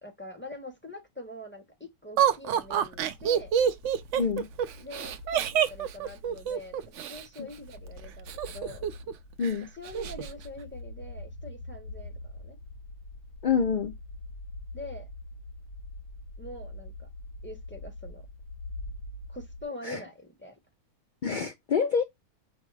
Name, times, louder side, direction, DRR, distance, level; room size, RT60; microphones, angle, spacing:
voice 1, 0.0-3.5 4.8-8.8 9.8-12.6 14.7-15.1 16.4-17.1 17.4-18.2 19.3-20.5, left 1 dB, 10° left, 0.9 m, -44 dB
Laughter, 2.2-7.2 8.3-9.1 9.4-9.5 9.9-10.3, right 9 dB, 65° right, 0.8 m, -27 dB
sound 1, 2.7-19.6, left 2 dB, 85° left, 1.4 m, -44 dB
voice 2, 4.2-4.5 9.4-9.7 13.4-13.9 19.8-20.0 21.2-22.0, left 6 dB, 70° left, 0.4 m, -26 dB
5.3 x 2.0 x 4.5 m
omnidirectional pair, 1.6 m